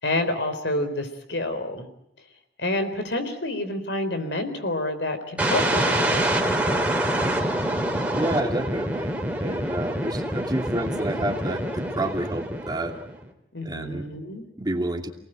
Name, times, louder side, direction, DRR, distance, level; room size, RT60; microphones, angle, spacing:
voice 1, 0.0-1.9 2.6-6.9 13.5-14.5, left 1 dB, 75° left, 8 dB, 4.1 m, -29 dB
sound 1, 5.4-13.2, right 1 dB, 5° right, 3.2 m, -26 dB
voice 2, 8.2-9.1 9.4-12.9 13.6-14.1 14.6-15.1, right 1 dB, 25° right, 3 dB, 2.6 m, -29 dB
28.0 x 19.5 x 9.0 m, 0.74 s
head